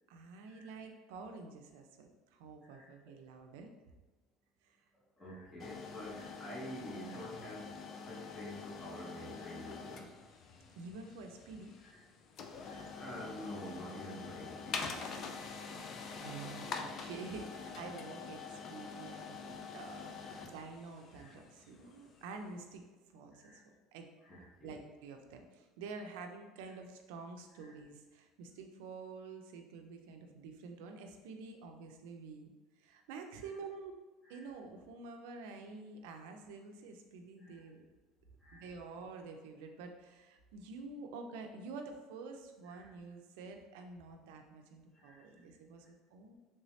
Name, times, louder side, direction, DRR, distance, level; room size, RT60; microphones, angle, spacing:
voice 1, 0.1-3.7 4.6-4.8 10.8-11.7 16.2-22.8 23.1-23.6 23.9-24.1 24.6-32.5 32.8-33.9 34.3-37.8 38.5-46.4, right 4 dB, 90° right, 4 dB, 0.4 m, -48 dB
voice 2, 2.7-3.1 4.9-7.8 8.1-10.2 11.8-12.0 12.6-15.4 17.8-17.9 20.2-20.5 21.1-21.3 23.3-23.6 24.2-24.8 26.6-26.8 27.5-27.8 34.2-34.5 37.4-37.7 38.4-38.7 42.6-42.9 44.9-45.3, equal, 15° left, -5 dB, 0.8 m, -49 dB
sound 1, 5.6-22.5, left 5 dB, 35° left, 0.3 m, -46 dB
3.3 x 3.1 x 2.7 m, 1.2 s
cardioid pair, 155°, 0 cm